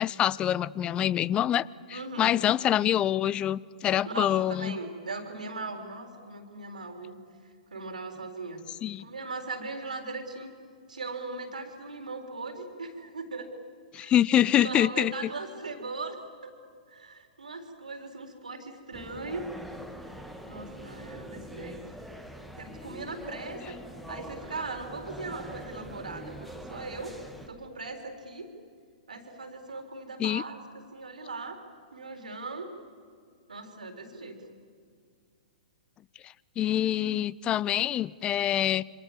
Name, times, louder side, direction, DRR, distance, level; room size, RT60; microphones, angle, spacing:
voice 1, 0.0-4.8 8.8-9.0 13.9-15.1 30.2-30.4 36.6-38.8, left 11 dB, 25° left, 23 dB, 0.6 m, -25 dB
voice 2, 1.9-2.4 4.1-7.2 7.4-8.6 9.0-10.5 10.9-13.5 14.0-14.1 14.6-16.2 16.4-16.5 16.9-19.5 20.5-21.8 22.6-23.6 24.1-27.1 27.5-28.5 29.1-31.6 31.9-32.7 33.5-34.4, right 3 dB, 80° right, 6 dB, 3.9 m, -39 dB
sound 1, 18.9-27.5, equal, ahead, 2.1 m, -43 dB
27.0 x 25.5 x 7.3 m, 2.1 s
figure-of-eight pair, 110°, 4 cm